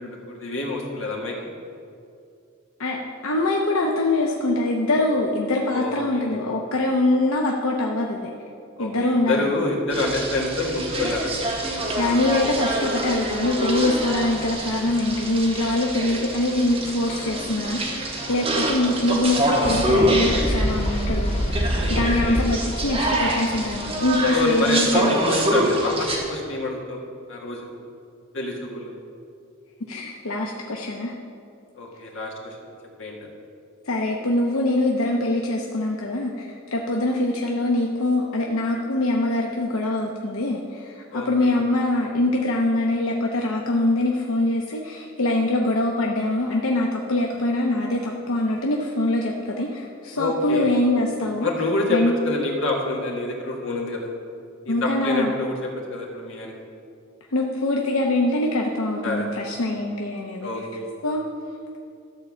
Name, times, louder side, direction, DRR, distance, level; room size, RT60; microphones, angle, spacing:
voice 1, 0.0-1.3 5.7-6.4 8.8-11.3 21.9-22.5 24.3-27.0 27.3-27.7 28.3-28.9 31.8-32.6 33.0-33.2 41.1-41.5 50.1-50.7 51.4-52.0 52.2-54.1 54.6-55.6 55.9-56.5 59.0-59.3 60.4-60.9, left 2 dB, 65° left, -1 dB, 1.8 m, -27 dB
voice 2, 3.2-8.3 8.8-9.6 12.0-25.2 29.9-31.1 33.9-51.5 51.9-52.2 54.7-55.3 57.3-60.5 61.0-61.2, left 2 dB, 90° left, 0 dB, 0.8 m, -23 dB
sound 1, 9.9-26.2, right 1 dB, 25° right, 1.3 m, -25 dB
sound 2, 19.6-24.4, left 2 dB, 30° left, 0.5 m, -33 dB
13.0 x 4.5 x 7.1 m, 2.4 s
head